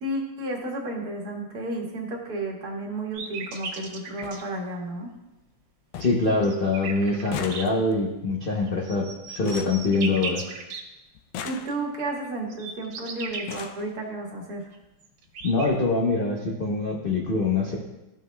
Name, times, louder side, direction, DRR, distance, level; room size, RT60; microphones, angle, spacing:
voice 1, 0.0-5.1 11.4-14.7, right 2 dB, 55° right, -1 dB, 1.7 m, -32 dB
sound 1, 2.1-2.3 3.5-3.6 3.8-3.9 4.2-4.4 4.9-5.3 5.6-5.7 5.9-6.3 6.6-10.6 11.1-12.1 12.9-13.0 13.3-13.9 14.8-14.9 15.3-15.5 15.7-15.9, left 8 dB, 85° left, 1.3 m, -40 dB
sound 2, 3.1-4.4 6.3-7.6 8.6-10.8 12.2-13.5 14.7-14.8 15.0-15.7, right 5 dB, 70° right, 1.5 m, -36 dB
voice 2, 6.0-10.4 15.4-17.8, left 3 dB, 60° left, -2 dB, 0.5 m, -24 dB
13.0 x 5.2 x 2.2 m, 0.97 s
omnidirectional pair, 2.1 m